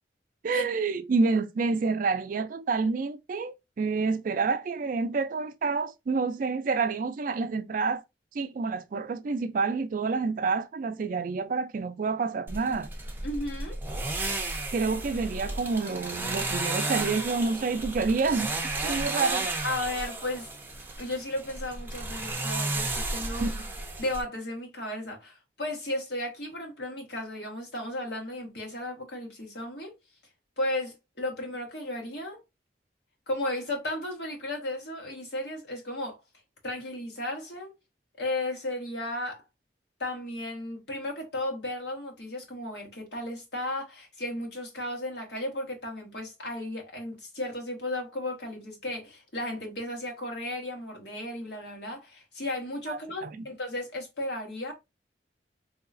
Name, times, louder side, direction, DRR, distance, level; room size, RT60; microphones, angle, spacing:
voice 1, 0.4-8.0 8.3-12.9 14.7-18.5 18.8-19.5 23.4-23.6 52.9-53.3, right 4 dB, 50° right, 0.4 m, -28 dB
sound 1, 12.5-24.2, right 2 dB, 10° right, 0.6 m, -33 dB
voice 2, 13.2-13.8 19.6-20.5 21.0-23.5 24.0-29.9 30.6-32.4 33.3-36.2 36.6-37.7 38.2-39.4 40.0-54.7, left 1 dB, 70° left, 1.5 m, -34 dB
3.9 x 2.8 x 2.5 m
head